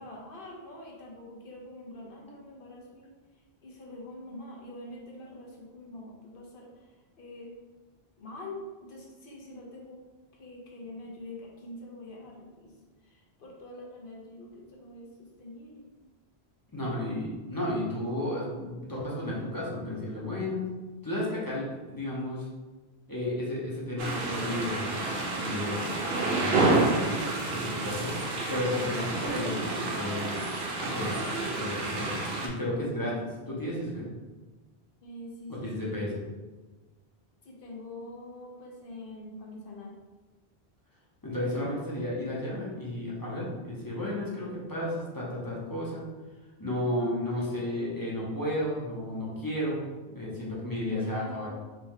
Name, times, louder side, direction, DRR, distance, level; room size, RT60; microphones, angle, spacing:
voice 1, 0.0-3.1 3.6-6.7 7.2-7.6 8.2-10.0 10.3-12.7 13.1-15.8 35.0-35.9 37.4-40.0 51.0-51.5, left 1 dB, 60° left, -2 dB, 1.0 m, -45 dB
voice 2, 16.7-20.7 21.0-22.5 23.1-25.1 25.4-26.0 26.2-27.2 27.5-30.4 30.8-31.2 31.5-34.1 35.5-36.2 41.2-46.0 46.6-49.8 50.1-51.5, left 1 dB, 20° left, -6 dB, 0.8 m, -33 dB
sound 1, 24.0-32.5, right 2 dB, 70° right, 0.9 m, -29 dB
3.3 x 3.1 x 3.5 m, 1.2 s
omnidirectional pair, 1.1 m